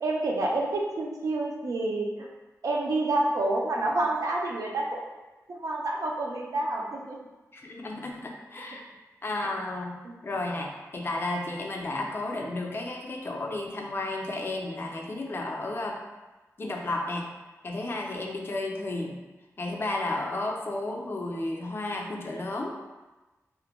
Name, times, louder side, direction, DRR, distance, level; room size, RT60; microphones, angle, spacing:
voice 1, 0.0-2.3 2.6-5.0 5.6-7.2 10.0-10.2, right 2 dB, 75° right, -2 dB, 0.4 m, -28 dB
voice 2, 7.5-8.9 9.2-9.9 10.2-16.0 16.6-17.3 17.6-19.2 19.6-22.7, left 2 dB, 40° left, 1 dB, 0.4 m, -32 dB
2.4 x 2.1 x 2.9 m, 1.1 s
wide cardioid pair, 100°, 6 cm